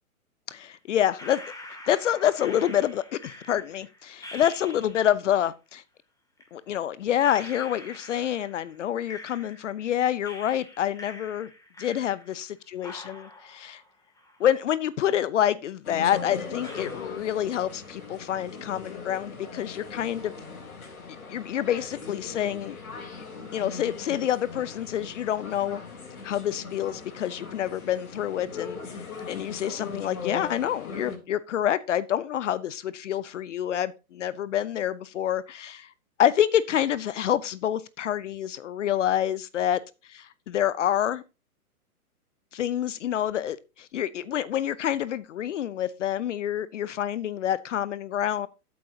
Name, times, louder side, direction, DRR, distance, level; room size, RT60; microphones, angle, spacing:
voice 1, 0.5-1.4 1.9-5.8 6.5-11.5 11.8-13.8 14.4-20.4 21.3-22.8 23.5-25.8 26.2-29.0 29.3-35.9 36.2-39.8 40.1-41.2 42.5-48.5, left 10 dB, 55° left, 0.8 m, -27 dB
sound 1, 1.2-5.3 6.4-6.5 7.2-9.9 10.2-12.5 12.8-14.9 15.2-15.3 16.0-16.1 16.6-17.9 18.2-18.8, left 1 dB, 10° left, 2.4 m, -46 dB
sound 2, 15.8-31.2, left 4 dB, 70° left, 3.8 m, -40 dB
13.5 x 8.0 x 2.8 m
figure-of-eight pair, 120°, 45 cm